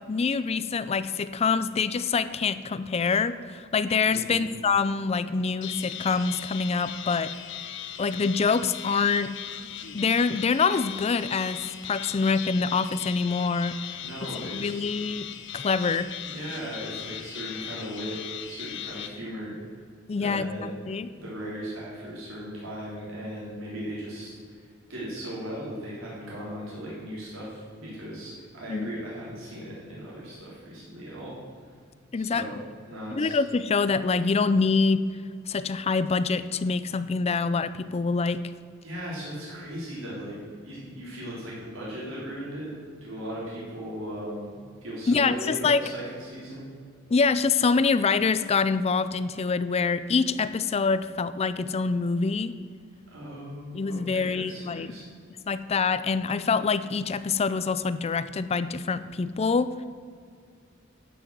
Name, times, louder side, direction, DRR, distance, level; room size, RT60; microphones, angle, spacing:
voice 1, 0.1-7.3 8.0-9.3 9.9-13.8 14.5-15.3 15.5-16.1 20.1-21.1 28.7-28.9 32.1-32.5 33.1-35.0 35.5-38.4 45.1-45.8 47.1-52.5 53.7-54.9 55.5-59.8, left 4 dB, 30° left, 14 dB, 0.4 m, -25 dB
voice 2, 4.1-4.4 14.0-14.9 15.8-18.2 18.5-19.6 20.1-20.7 21.1-24.6 24.9-31.3 32.1-33.4 38.8-42.7 43.0-46.7 53.1-55.0, equal, 80° right, -7 dB, 3.6 m, -38 dB
sound 1, 5.6-19.1, left 10 dB, 65° left, 0.8 m, -38 dB
12.0 x 6.3 x 7.4 m, 2.1 s
head